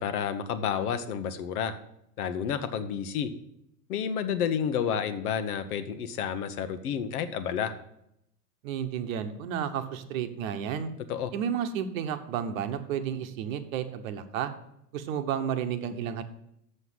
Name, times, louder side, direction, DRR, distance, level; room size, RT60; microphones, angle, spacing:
voice 1, 0.0-1.7 2.2-3.3 3.9-7.7 11.1-11.3, left 8 dB, 65° left, 11 dB, 1.1 m, -30 dB
voice 2, 8.6-10.9 11.3-14.5 14.9-16.2, right 8 dB, 55° right, 9 dB, 1.1 m, -32 dB
6.6 x 6.5 x 7.5 m, 0.77 s
hypercardioid pair, 120°, 48 cm